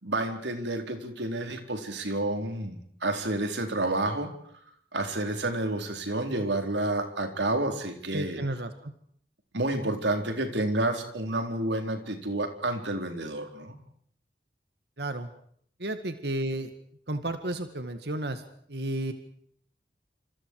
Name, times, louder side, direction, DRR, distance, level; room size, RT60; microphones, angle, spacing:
voice 1, 0.0-4.3 4.9-8.4 9.5-13.8, right 2 dB, 90° right, 6 dB, 4.3 m, -30 dB
voice 2, 8.1-8.9 15.0-15.3 15.8-16.7 17.1-18.4 18.7-19.1, right 1 dB, 65° right, 9 dB, 1.9 m, -32 dB
28.5 x 27.5 x 4.8 m, 0.64 s
head